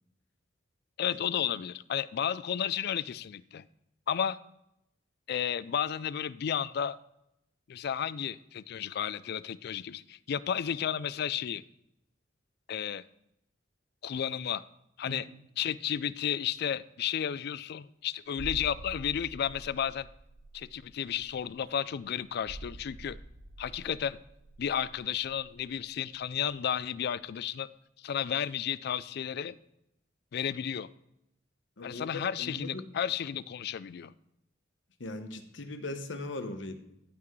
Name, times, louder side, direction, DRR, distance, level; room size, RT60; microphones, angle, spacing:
voice 1, 1.0-3.7 4.1-4.4 5.3-7.0 7.7-11.6 12.7-13.0 14.0-14.6 15.0-15.3 15.6-20.1 20.5-23.2 23.6-24.2 24.6-27.7 28.0-29.6 30.3-30.9 31.8-34.1, left 9 dB, 60° left, 18 dB, 0.3 m, -32 dB
sound 1, 18.4-26.8 27.0-27.2, right 2 dB, 50° right, 0.6 m, -47 dB
voice 2, 32.4-32.9 35.0-36.7, left 2 dB, 80° left, 8 dB, 1.0 m, -39 dB
14.0 x 5.9 x 3.1 m, 0.82 s
head